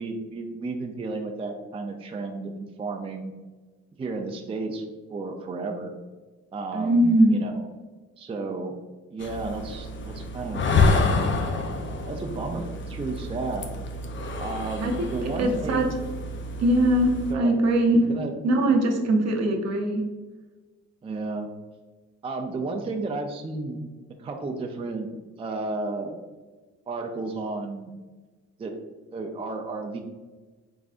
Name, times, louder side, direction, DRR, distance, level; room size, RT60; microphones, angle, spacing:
voice 1, 0.0-3.3 4.0-4.8 5.1-5.9 6.5-7.7 8.2-8.7 9.1-11.3 12.1-13.7 14.4-15.9 17.3-17.5 18.1-18.3 21.0-21.5 22.2-23.8 24.2-25.1 25.4-26.2 26.9-27.9 28.6-28.7 29.1-30.0, right 3 dB, 20° right, 3 dB, 0.4 m, -32 dB
voice 2, 6.7-7.4 14.8-14.9 15.4-15.9 16.6-18.0 18.4-20.0, right 1 dB, 60° right, 2 dB, 0.8 m, -21 dB
sound 1, 9.2-17.3, left 3 dB, 40° left, 0.6 m, -28 dB
3.9 x 3.6 x 2.4 m, 1.3 s
cardioid pair, 90°, 30 cm